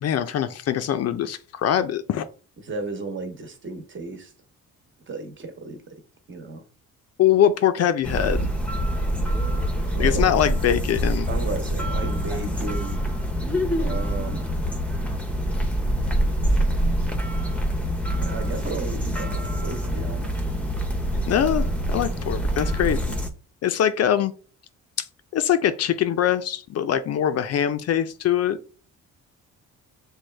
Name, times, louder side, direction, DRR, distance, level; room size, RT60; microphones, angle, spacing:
voice 1, 0.0-2.3 7.2-8.5 10.0-11.3 21.3-21.6 21.9-23.2 23.6-24.3 25.3-28.6, left 10 dB, 55° left, 0.5 m, -22 dB
voice 2, 2.6-4.3 5.1-5.8 6.3-6.6 9.9-10.3 11.3-13.0 13.8-14.4 16.5-17.0 18.2-20.3, right 3 dB, 40° right, 1.1 m, -34 dB
sound 1, 8.0-23.3, equal, 5° left, 0.7 m, -25 dB
6.2 x 2.3 x 3.3 m
cardioid pair, 90°, 30 cm